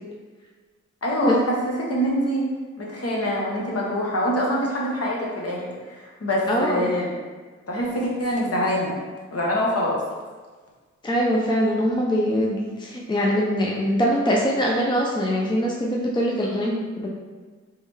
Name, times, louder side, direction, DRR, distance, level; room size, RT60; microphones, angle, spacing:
voice 1, 1.0-1.3 1.9-2.4 2.8-7.2 7.7-8.9 9.3-10.0, equal, 55° left, -3 dB, 1.0 m, -25 dB
voice 2, 6.5-6.9 11.0-17.1, equal, 15° left, -2 dB, 0.5 m, -23 dB
3.6 x 3.1 x 3.3 m, 1.4 s
wide cardioid pair, 100°, 29 cm